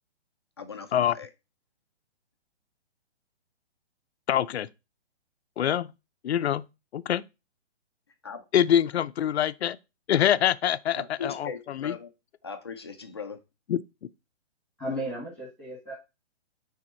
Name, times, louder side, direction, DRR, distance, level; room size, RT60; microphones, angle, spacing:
voice 1, 0.6-1.3 8.2-8.5 10.1-10.2 11.0-12.1 12.4-13.4, left 6 dB, 25° left, 0.5 m, -39 dB
voice 2, 4.3-4.7 5.6-5.9 6.2-6.7 6.9-7.2 8.5-9.8 10.1-12.0 13.7-13.8, left 10 dB, 65° left, 0.6 m, -25 dB
voice 3, 14.8-15.9, equal, 5° left, 1.6 m, -34 dB
9.7 x 3.5 x 4.2 m
hypercardioid pair, 170°, 34 cm